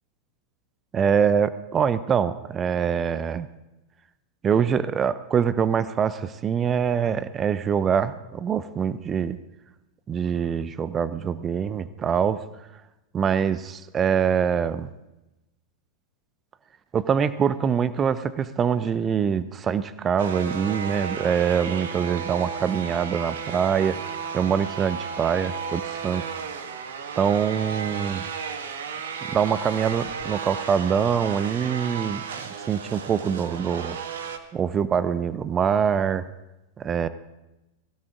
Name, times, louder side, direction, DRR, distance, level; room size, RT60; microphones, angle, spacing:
voice 1, 0.9-3.5 4.4-9.4 10.1-12.4 13.1-14.9 16.9-24.0 24.3-26.2 27.2-28.2 29.3-32.2 32.7-34.0 34.5-36.2 36.8-37.1, right 7 dB, 25° right, 15 dB, 0.7 m, -24 dB
sound 1, 20.2-34.4, right 6 dB, 60° right, 1.5 m, -34 dB
21.5 x 16.5 x 3.8 m, 0.98 s
figure-of-eight pair, 90°, 0 cm